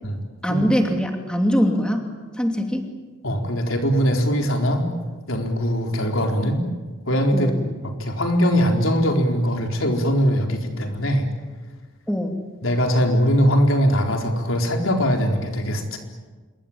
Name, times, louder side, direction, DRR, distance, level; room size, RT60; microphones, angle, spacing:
voice 1, 0.4-2.0 2.3-2.9 7.3-7.6 12.1-12.4, equal, 5° left, 3 dB, 2.7 m, -22 dB
voice 2, 3.2-4.9 5.3-6.6 7.1-7.5 7.8-11.3 12.6-16.0, equal, 85° left, 2 dB, 4.2 m, -21 dB
27.0 x 23.0 x 8.8 m, 1.3 s
head